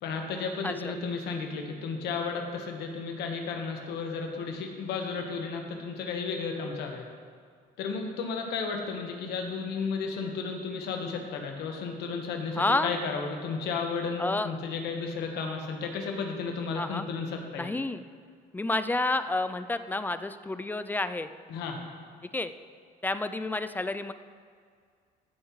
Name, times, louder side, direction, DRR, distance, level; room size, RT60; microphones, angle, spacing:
voice 1, 0.0-7.1 7.8-17.7 21.5-21.8, left 5 dB, 80° left, 3 dB, 1.3 m, -33 dB
voice 2, 12.6-13.0 14.2-14.5 16.7-17.0 17.6-18.0 18.5-21.3 22.3-22.5 23.0-24.1, left 2 dB, 10° left, 11 dB, 0.3 m, -29 dB
14.5 x 7.0 x 3.2 m, 2.1 s
cardioid pair, 110°, 17 cm